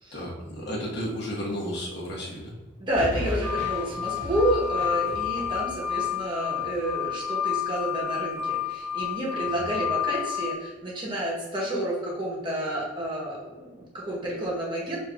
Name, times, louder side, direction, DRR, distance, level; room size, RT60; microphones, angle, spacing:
voice 1, 0.1-2.5 9.4-9.6, equal, 60° left, -4 dB, 1.1 m, -33 dB
voice 2, 2.8-15.0, right 1 dB, 25° right, -4 dB, 0.9 m, -30 dB
sound 1, 2.9-6.9 7.2-7.3, left 1 dB, 10° left, 1.0 m, -36 dB
sound 2, 3.4-10.5, left 9 dB, 85° right, 0.6 m, -30 dB
6.6 x 2.6 x 2.3 m, 1.2 s
head